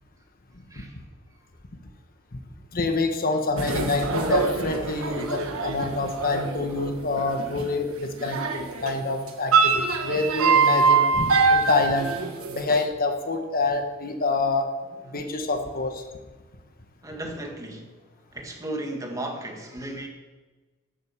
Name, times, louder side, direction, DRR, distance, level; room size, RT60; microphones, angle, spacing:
voice 1, 2.7-12.1 12.5-14.7 15.1-16.0, left 3 dB, 45° left, 5 dB, 1.2 m, -26 dB
sound 1, 3.6-8.9 9.3-12.8, right 4 dB, 90° right, 1.4 m, -24 dB
voice 2, 15.0-15.4 17.0-18.0 18.3-20.1, right 1 dB, 15° right, 2 dB, 1.9 m, -35 dB
11.0 x 7.8 x 7.2 m, 1.2 s
head